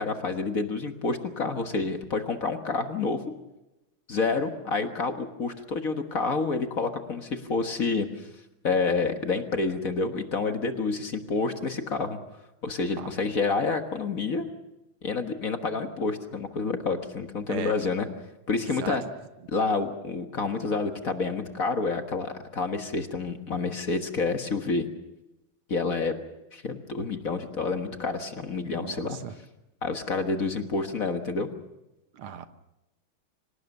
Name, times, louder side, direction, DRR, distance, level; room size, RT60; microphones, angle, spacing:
voice 1, 0.0-3.2 4.1-8.3 8.6-12.2 12.6-14.5 15.0-18.1 18.5-19.0 19.5-24.9 25.7-26.2 26.5-29.2 29.8-31.5, left 4 dB, 45° left, 6 dB, 1.7 m, -28 dB
voice 2, 28.8-29.3 32.1-32.5, right 8 dB, 75° right, 10 dB, 2.0 m, -36 dB
25.5 x 18.5 x 6.6 m, 0.97 s
omnidirectional pair, 2.4 m